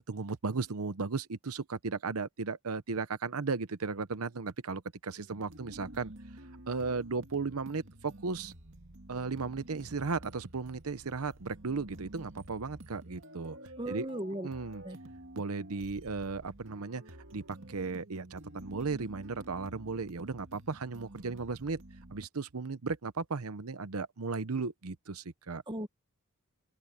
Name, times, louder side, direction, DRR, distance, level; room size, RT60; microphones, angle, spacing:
voice 1, 0.0-6.1 6.7-8.5 9.1-13.6 13.9-14.1 14.4-14.8 15.3-17.0 17.3-21.8 22.1-25.6, right 4 dB, 85° right, 0.8 m, -35 dB
sound 1, 5.2-22.3, right 1 dB, 60° right, 2.4 m, -50 dB
voice 2, 13.8-14.5 14.8-15.0 25.7-25.9, right 1 dB, 20° right, 1.3 m, -36 dB
open air
head